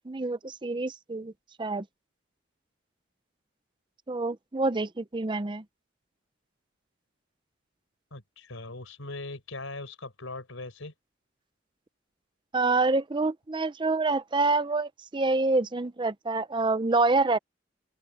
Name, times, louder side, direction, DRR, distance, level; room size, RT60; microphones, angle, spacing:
voice 1, 0.0-1.3 1.6-1.9 4.1-5.6 12.5-17.4, right 3 dB, 25° right, 0.5 m, -27 dB
voice 2, 8.1-10.9, left 2 dB, 90° left, 4.8 m, -40 dB
open air
head